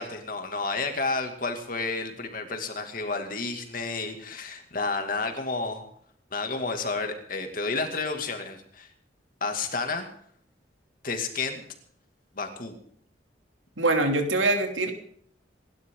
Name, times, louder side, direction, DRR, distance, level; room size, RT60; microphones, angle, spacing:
voice 1, 0.0-5.8 6.3-8.9 9.4-10.1 11.0-11.6 12.3-12.8, left 3 dB, 45° left, 5 dB, 2.5 m, -31 dB
voice 2, 13.8-14.9, right 2 dB, 85° right, 4 dB, 3.0 m, -23 dB
28.0 x 12.0 x 3.9 m, 0.62 s
head